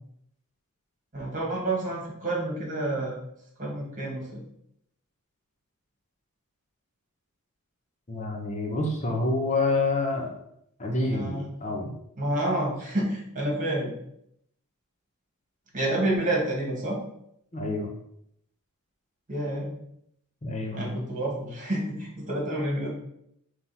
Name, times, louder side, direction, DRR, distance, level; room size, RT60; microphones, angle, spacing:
voice 1, 1.1-3.2 3.6-4.4 11.1-11.5 12.2-13.9 15.7-17.0 19.3-19.7 20.7-22.9, right 1 dB, 35° right, -2 dB, 2.1 m, -29 dB
voice 2, 8.1-10.3 10.8-11.9 17.5-17.9 20.4-20.9, left 2 dB, 35° left, 1 dB, 0.9 m, -27 dB
5.6 x 3.2 x 5.6 m, 0.75 s
head